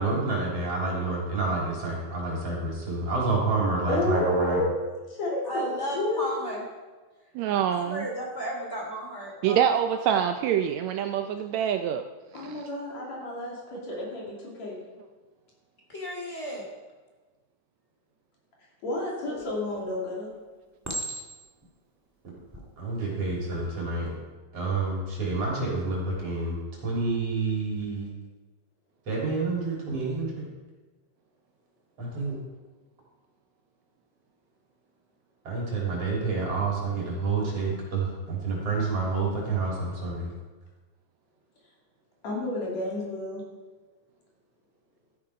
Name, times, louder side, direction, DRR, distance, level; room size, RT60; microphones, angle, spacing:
voice 1, 0.0-4.6 22.8-24.1 24.5-26.6 26.8-28.1 29.1-30.3 32.0-32.4 35.4-40.3, right 3 dB, 55° right, -4 dB, 4.3 m, -28 dB
voice 2, 3.9-6.6 12.3-14.8 18.8-20.3 42.2-43.4, left 2 dB, 65° left, -3 dB, 4.2 m, -31 dB
voice 3, 5.4-6.6 7.7-9.6 15.9-16.7 19.3-19.5, right 1 dB, 25° left, -2 dB, 3.0 m, -34 dB
voice 4, 7.4-8.1 9.4-12.1 12.3-12.6, right 9 dB, 80° right, 7 dB, 1.8 m, -25 dB
Chink clink, 19.4-19.9 20.8-21.6 22.4-22.7, right 1 dB, 10° right, 1.0 m, -36 dB
13.5 x 9.6 x 5.0 m, 1.3 s
omnidirectional pair, 3.4 m